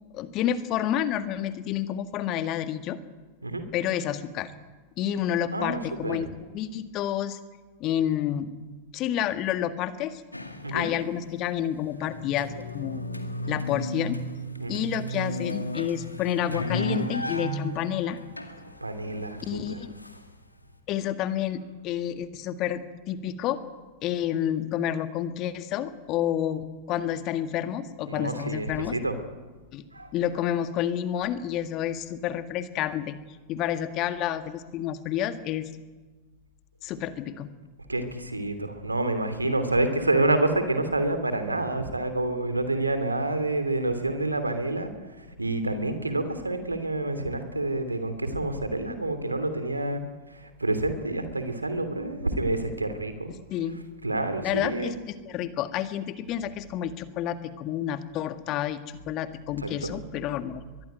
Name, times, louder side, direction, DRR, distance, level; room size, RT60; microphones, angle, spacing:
voice 1, 0.1-3.0 3.7-4.5 5.0-7.4 7.8-8.5 8.9-10.2 10.7-13.0 13.5-14.2 14.7-18.2 19.4-19.9 20.9-23.6 24.0-29.0 29.7-29.8 30.1-33.2 33.5-35.7 36.8-37.5 53.5-53.8 54.4-58.8 59.1-60.6, left 10 dB, 40° left, 10 dB, 1.7 m, -29 dB
voice 2, 5.5-6.2 10.6-10.9 14.6-14.8 18.8-19.8 28.1-29.1 29.9-30.1 37.9-44.9 45.2-50.0 50.3-53.4 54.0-54.9 59.6-59.9, right 2 dB, 80° right, 9 dB, 2.9 m, -28 dB
sound 1, 10.3-11.4 11.7-20.6, left 1 dB, 85° left, 2.1 m, -34 dB
23.0 x 21.5 x 9.2 m, 1.3 s
figure-of-eight pair, 90°, 0 cm